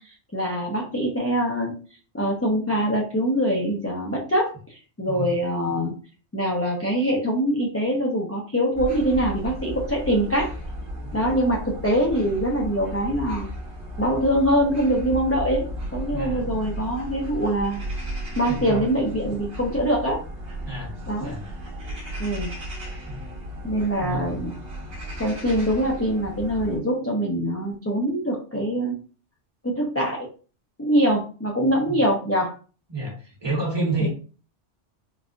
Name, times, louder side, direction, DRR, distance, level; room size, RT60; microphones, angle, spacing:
voice 1, 0.3-1.7 2.1-5.9 6.3-10.5 11.1-13.5 14.0-17.8 18.4-20.2 21.1-21.3 22.2-22.5 23.6-24.5 25.2-29.0 29.6-30.3 30.8-32.5 34.0-34.1, equal, 20° left, -3 dB, 0.4 m, -24 dB
sound 1, 8.7-26.8, equal, 60° right, 1.0 m, -35 dB
voice 2, 16.1-16.4 18.5-18.8 20.6-21.4 23.1-23.2 24.0-24.3 31.9-32.0 32.9-34.1, right 2 dB, 20° right, -3 dB, 1.3 m, -29 dB
3.9 x 2.4 x 2.4 m, 0.37 s
omnidirectional pair, 1.2 m